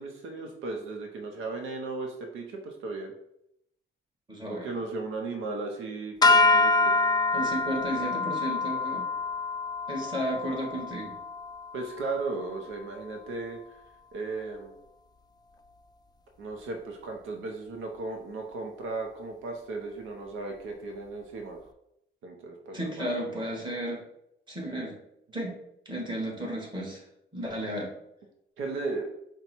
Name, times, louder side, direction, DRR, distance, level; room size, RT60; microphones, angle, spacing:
voice 1, 0.0-3.1 4.5-6.9 11.7-13.8 14.1-14.8 16.4-21.6 22.2-23.1 28.6-29.1, right 3 dB, 85° right, 2 dB, 0.8 m, -36 dB
voice 2, 4.3-4.7 7.3-9.1 9.9-11.1 22.7-24.0 24.5-25.0 25.3-25.6 25.8-27.0 27.3-27.9, equal, 25° right, -2 dB, 1.8 m, -33 dB
sound 1, 6.2-12.6, left 3 dB, 20° left, 0.3 m, -26 dB
5.2 x 2.3 x 4.4 m, 0.78 s
cardioid pair, 90°, 20 cm